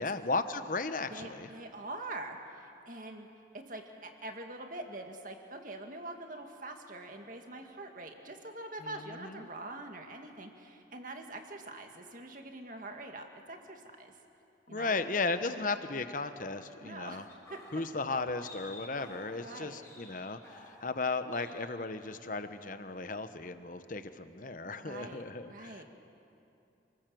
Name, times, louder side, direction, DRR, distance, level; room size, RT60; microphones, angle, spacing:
voice 1, 0.0-1.5 8.8-9.5 14.7-17.2 17.7-25.8, left 3 dB, 45° left, 10 dB, 1.0 m, -35 dB
voice 2, 1.1-3.3 3.5-14.1 14.7-15.0 16.8-17.6 19.4-19.8 24.8-25.8, right 2 dB, 45° right, 4 dB, 2.0 m, -44 dB
sound 1, 17.3-21.1 21.3-21.7 22.0-22.2, left 1 dB, 15° left, 4.3 m, -53 dB
29.0 x 20.0 x 7.7 m, 2.7 s
head